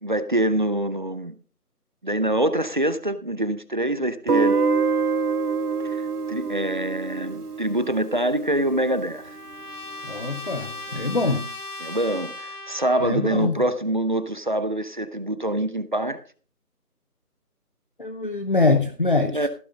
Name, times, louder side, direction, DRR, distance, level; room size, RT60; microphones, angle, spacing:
voice 1, 0.0-1.3 2.0-4.6 5.9-9.4 11.8-16.2 19.3-19.5, right 1 dB, 30° right, 0.8 m, -25 dB
Guitar, 4.3-9.2, right 4 dB, 75° right, 1.4 m, -26 dB
Trumpet, 8.5-13.4, left 2 dB, 75° left, 2.7 m, -38 dB
voice 2, 10.0-11.5 13.0-13.6 18.0-19.5, left 3 dB, 35° left, 0.9 m, -23 dB
15.5 x 9.4 x 3.8 m
figure-of-eight pair, 160°, 46 cm